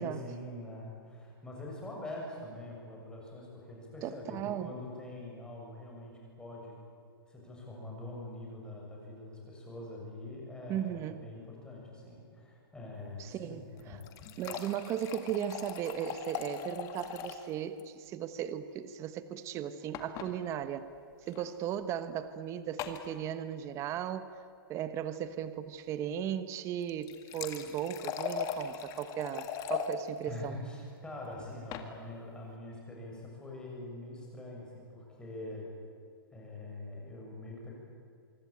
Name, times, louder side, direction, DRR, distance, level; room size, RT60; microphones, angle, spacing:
voice 1, 0.0-6.8 7.3-14.1 30.2-35.7 36.3-37.7, left 1 dB, 5° left, -2 dB, 7.4 m, -44 dB
voice 2, 4.0-4.7 10.7-11.3 13.2-14.0 14.4-20.9 21.3-24.3 24.7-30.5, right 9 dB, 25° right, 12 dB, 1.1 m, -37 dB
sound 1, 13.8-17.5 17.8-17.9 18.1-18.2 19.9-20.3 21.3-21.4 22.8-23.1 26.8-29.9 31.4-31.9, left 8 dB, 25° left, 2.1 m, -39 dB
25.5 x 23.5 x 9.0 m, 2.3 s
hypercardioid pair, 150°, 12 cm